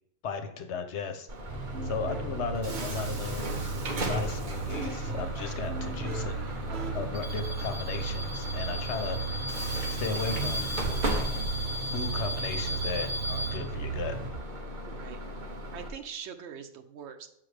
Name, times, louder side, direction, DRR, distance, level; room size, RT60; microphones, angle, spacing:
voice 1, 0.2-3.7 4.0-6.5 6.9-9.4 9.9-10.8 11.9-14.1, left 5 dB, 90° left, 7 dB, 1.1 m, -36 dB
Bus / Alarm, 1.3-15.9, equal, 50° right, 1.0 m, -35 dB
sound 1, 1.5-14.3, right 5 dB, 25° right, 0.5 m, -36 dB
sound 2, 1.7-6.9, right 1 dB, 70° right, 1.2 m, -39 dB
voice 2, 14.9-15.2 15.7-17.3, right 7 dB, 85° right, 6 dB, 0.9 m, -43 dB
7.6 x 5.6 x 3.3 m, 0.81 s
omnidirectional pair, 1.1 m